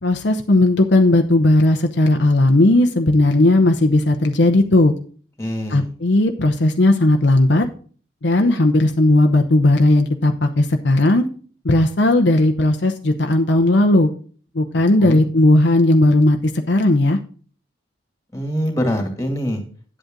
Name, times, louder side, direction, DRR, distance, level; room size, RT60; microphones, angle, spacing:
voice 1, 0.0-4.9 5.7-7.7 8.2-11.3 11.6-14.1 14.5-16.4 16.7-17.2, left 1 dB, 65° left, 5 dB, 0.8 m, -16 dB
voice 2, 5.4-5.9 15.0-15.3 18.3-19.6, equal, 15° left, 3 dB, 2.2 m, -24 dB
9.8 x 8.1 x 3.8 m, 0.42 s
head